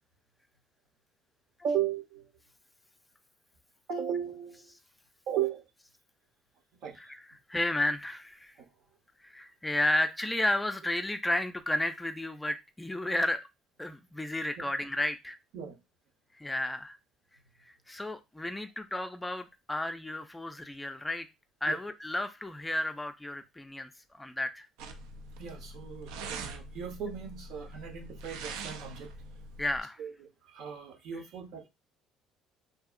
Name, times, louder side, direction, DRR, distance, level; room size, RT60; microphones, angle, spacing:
voice 1, 1.6-2.3 3.9-4.7 5.3-5.6 6.8-7.0 14.6-14.7 15.5-15.8 21.7-21.8 25.4-29.1 30.0-30.1 30.4-31.7, right 9 dB, 70° right, 4 dB, 0.8 m, -35 dB
voice 2, 7.0-8.5 9.2-13.5 13.8-15.4 16.4-17.0 17.7-21.3 21.6-23.9 24.2-24.7 29.6-30.0, left 1 dB, 10° left, 8 dB, 0.3 m, -32 dB
sound 1, 24.8-29.8, right 3 dB, 90° right, 0.4 m, -43 dB
2.7 x 2.6 x 2.4 m, 0.22 s
cardioid pair, 100°, 0 cm